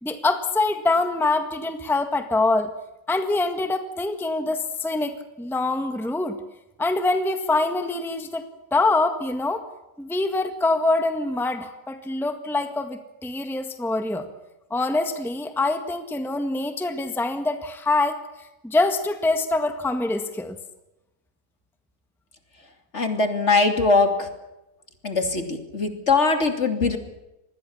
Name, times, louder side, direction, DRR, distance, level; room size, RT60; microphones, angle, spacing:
voice 1, 0.0-2.7 3.1-6.4 6.8-9.6 10.0-14.3 14.7-18.2 18.6-20.6, left 2 dB, ahead, 7 dB, 1.6 m, -24 dB
voice 2, 22.9-24.3 25.0-27.0, left 3 dB, 50° left, 6 dB, 3.1 m, -21 dB
26.5 x 20.5 x 7.2 m, 0.94 s
omnidirectional pair, 1.6 m